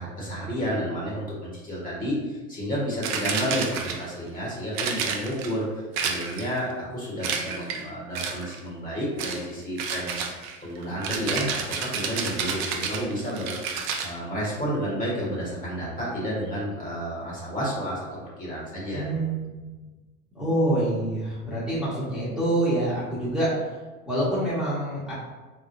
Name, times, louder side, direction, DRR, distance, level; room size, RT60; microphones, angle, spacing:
voice 1, 0.0-10.1 10.6-13.6 14.0-19.1, equal, 20° left, -5 dB, 1.4 m, -31 dB
sound 1, 3.0-4.2 4.7-5.5 6.0-6.6 7.2-7.8 8.1-8.6 9.2-9.4 9.8-14.1, right 6 dB, 40° right, 0.6 m, -30 dB
voice 2, 18.9-19.7 20.3-23.8 24.1-25.1, right 1 dB, ahead, -10 dB, 1.2 m, -26 dB
3.7 x 3.3 x 2.6 m, 1.2 s
hypercardioid pair, 105°, 43 cm